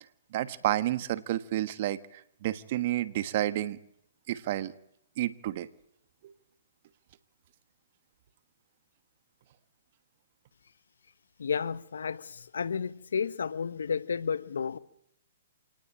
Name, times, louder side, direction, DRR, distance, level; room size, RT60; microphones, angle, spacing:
voice 1, 0.3-3.8 4.3-4.7 5.2-5.7 6.2-6.3, right 14 dB, 45° right, 1.4 m, -30 dB
voice 2, 11.4-14.8, left 6 dB, 85° left, 1.3 m, -32 dB
26.5 x 19.5 x 8.9 m
hypercardioid pair, 150°, 0 cm